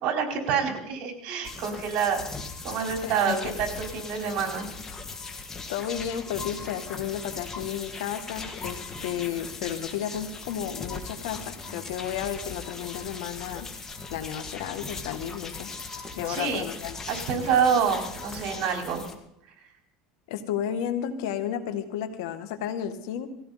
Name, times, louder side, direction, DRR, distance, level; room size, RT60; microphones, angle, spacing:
voice 1, 0.0-2.2 2.6-4.7 16.3-16.7 17.1-19.0, right 6 dB, 55° right, 2 dB, 4.4 m, -27 dB
sound 1, 1.4-19.1, left 4 dB, 20° left, 2.0 m, -39 dB
voice 2, 3.0-3.5 5.7-13.7 14.1-15.7 16.2-17.0 20.3-23.3, left 9 dB, 85° left, 8 dB, 2.0 m, -32 dB
20.0 x 16.0 x 4.3 m, 0.79 s
supercardioid pair, 130°, 2 cm